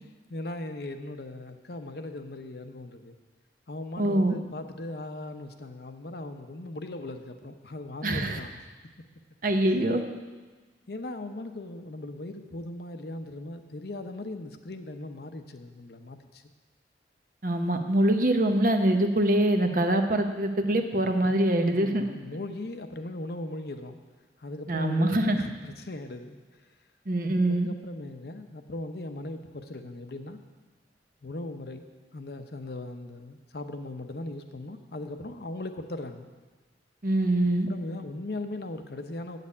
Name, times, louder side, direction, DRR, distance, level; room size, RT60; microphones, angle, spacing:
voice 1, 0.3-3.1 3.7-8.7 9.7-9.8 10.9-16.4 21.7-24.0 24.4-26.4 27.5-30.4 31.2-31.9 32.1-36.3 37.7-39.4, left 2 dB, 60° left, 7 dB, 0.8 m, -38 dB
voice 2, 4.0-4.3 8.0-8.4 9.4-10.0 17.4-22.1 24.7-25.4 27.1-27.7 37.0-37.7, right 1 dB, 50° right, 6 dB, 0.9 m, -24 dB
8.2 x 6.8 x 8.5 m, 1.3 s
head